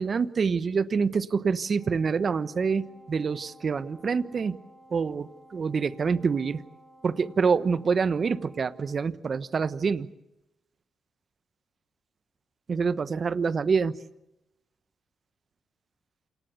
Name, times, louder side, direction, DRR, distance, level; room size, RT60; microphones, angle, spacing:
voice 1, 0.0-4.6 4.9-6.6 7.0-10.1 12.7-14.0, right 5 dB, 50° right, 15 dB, 1.1 m, -26 dB
Wind instrument woodwind instrument, 1.7-9.0, right 1 dB, 20° right, 4.9 m, -55 dB
28.0 x 18.5 x 8.2 m, 0.91 s
supercardioid pair, 50°, 0 cm